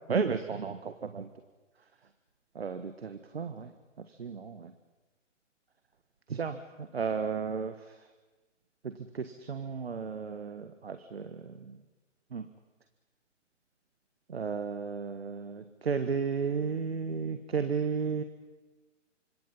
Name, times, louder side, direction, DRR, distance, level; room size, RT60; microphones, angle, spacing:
voice 1, 0.1-1.3 2.5-3.7 4.1-4.7 6.3-7.7 8.8-11.7 12.3-12.5 14.3-18.2, right 5 dB, 55° right, 9 dB, 1.6 m, -33 dB
28.5 x 26.0 x 5.6 m, 1.2 s
figure-of-eight pair, 135°, 37 cm